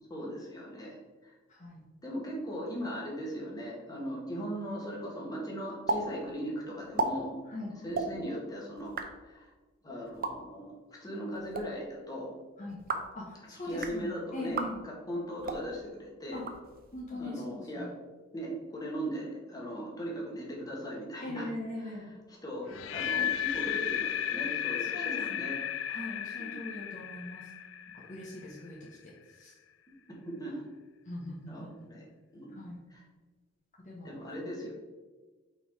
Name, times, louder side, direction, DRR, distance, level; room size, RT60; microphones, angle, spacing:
voice 1, 0.1-1.0 1.2-1.4 2.0-7.3 7.8-8.9 9.3-9.5 9.8-12.3 13.6-16.4 17.1-17.9 18.3-21.5 21.8-25.6 26.4-26.6 30.2-30.6 31.5-32.0 32.3-32.5 32.9-33.0 34.0-34.7, equal, 20° left, -3 dB, 1.7 m, -38 dB
voice 2, 1.5-1.8 7.5-7.7 12.6-12.8 13.1-14.8 16.3-16.4 16.9-17.9 21.2-22.1 24.8-25.4 25.9-27.5 28.1-28.8 29.3-29.5 31.1-31.7 32.5-32.8 33.8-34.1, left 1 dB, 40° left, -5 dB, 1.2 m, -41 dB
sound 1, 5.9-6.0 6.3-6.4 6.8-7.1 7.9-8.1 8.8-9.1 10.1-10.3 11.3-11.6 12.7-13.1 13.7-14.0 14.5-14.7 15.4-15.6 16.3-17.0, right 3 dB, 50° right, 0.7 m, -34 dB
sound 2, 22.7-28.7, left 9 dB, 75° left, 0.4 m, -34 dB
5.7 x 4.5 x 4.7 m, 1.3 s
head